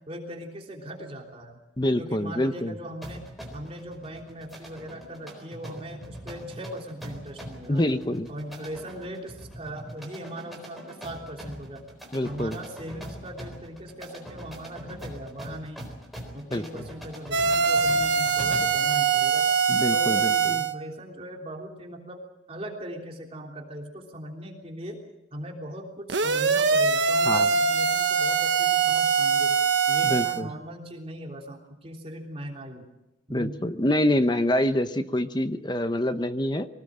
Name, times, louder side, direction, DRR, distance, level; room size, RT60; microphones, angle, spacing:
voice 1, 0.1-1.6 2.0-3.2 3.5-7.9 8.3-11.8 12.2-15.9 16.3-19.5 19.9-22.2 22.5-25.0 25.3-29.6 29.9-32.8 33.3-33.6, equal, 30° right, 0 dB, 3.4 m, -39 dB
voice 2, 1.8-2.8 7.7-8.3 12.1-12.6 16.5-16.9 19.7-20.6 27.2-27.5 30.0-30.5 33.3-36.7, left 1 dB, 20° left, 10 dB, 0.9 m, -26 dB
sound 1, 3.0-18.9, equal, ahead, 4.0 m, -42 dB
sound 2, 17.3-20.7 26.1-30.4, right 5 dB, 65° right, 1.3 m, -23 dB
24.5 x 18.5 x 7.6 m, 0.96 s
head